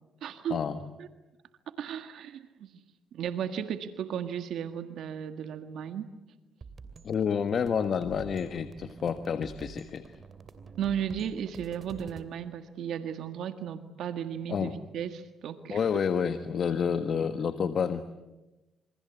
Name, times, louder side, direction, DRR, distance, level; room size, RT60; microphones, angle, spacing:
voice 1, 0.2-0.6 1.0-1.1 1.8-2.8 3.1-6.1 10.8-15.9, right 9 dB, 75° right, 8 dB, 1.7 m, -35 dB
sound 1, 6.6-12.2, right 5 dB, 40° right, 2.8 m, -48 dB
voice 2, 7.0-10.0 14.5-14.7 15.7-18.0, left 7 dB, 55° left, 9 dB, 1.4 m, -29 dB
27.5 x 25.0 x 8.3 m, 1.0 s
cardioid pair, 90°, 0 cm